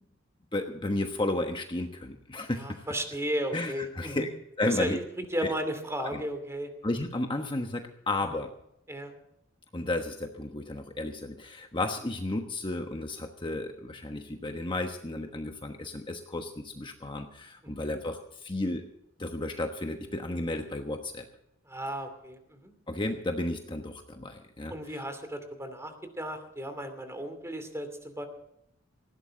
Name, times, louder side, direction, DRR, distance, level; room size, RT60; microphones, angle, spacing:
voice 1, 0.5-2.8 3.5-4.3 4.6-5.0 5.4-5.5 6.0-6.2 6.8-8.5 9.7-18.8 19.2-21.2 22.9-25.0, left 2 dB, 25° left, 4 dB, 1.2 m, -33 dB
voice 2, 2.6-4.3 4.6-5.0 5.3-6.7 8.9-9.1 17.6-17.9 21.7-22.7 24.7-28.2, right 1 dB, 15° right, 8 dB, 2.7 m, -35 dB
19.5 x 16.0 x 3.8 m, 0.77 s
head